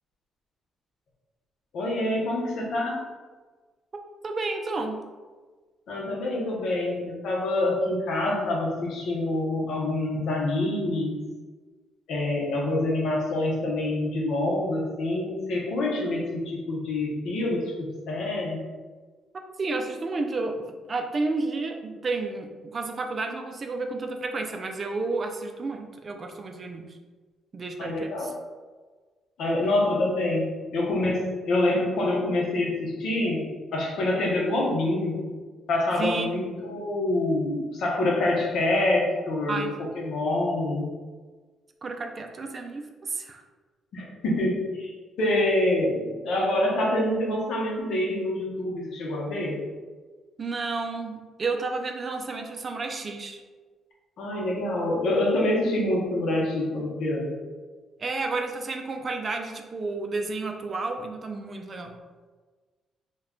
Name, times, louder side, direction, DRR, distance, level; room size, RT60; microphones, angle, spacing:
voice 1, 1.7-3.0 5.9-11.2 12.1-18.6 27.8-28.3 29.4-35.2 35.7-39.7 39.9-40.9 43.9-49.6 54.2-57.3, left 1 dB, 75° left, -2 dB, 0.7 m, -26 dB
voice 2, 4.2-5.0 19.6-27.0 27.5-28.3 36.0-36.4 39.5-39.8 41.8-43.4 50.4-53.4 58.0-62.0, right 3 dB, 40° right, 4 dB, 0.3 m, -31 dB
2.2 x 2.1 x 3.6 m, 1.4 s
cardioid pair, 90°, 0 cm